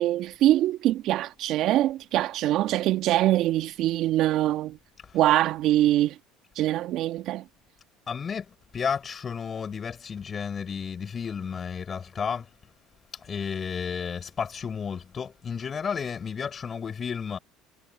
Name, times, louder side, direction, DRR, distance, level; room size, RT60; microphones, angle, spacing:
voice 1, 0.0-4.8 5.1-6.1 6.6-7.4, right 14 dB, 60° right, 1.7 m, -23 dB
voice 2, 8.1-12.5 13.1-17.4, left 6 dB, 35° left, 4.2 m, -32 dB
hypercardioid pair, 80°, 0 cm